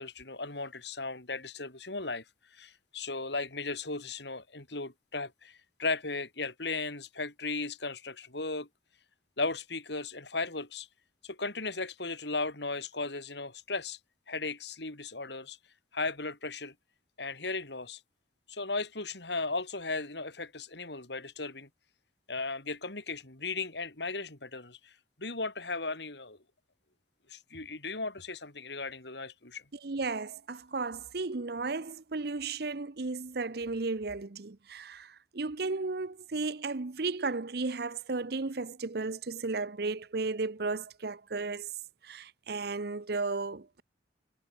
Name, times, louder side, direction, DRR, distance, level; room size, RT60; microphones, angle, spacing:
voice 1, 0.0-2.2 2.5-8.7 9.4-10.9 11.2-14.0 14.3-15.6 15.9-16.7 17.2-18.0 18.5-21.7 22.3-24.9 25.2-26.4 27.3-29.6, left 3 dB, 65° left, 3.7 m, -36 dB
voice 2, 29.7-41.7 42.0-43.8, right 3 dB, 55° right, 0.8 m, -34 dB
head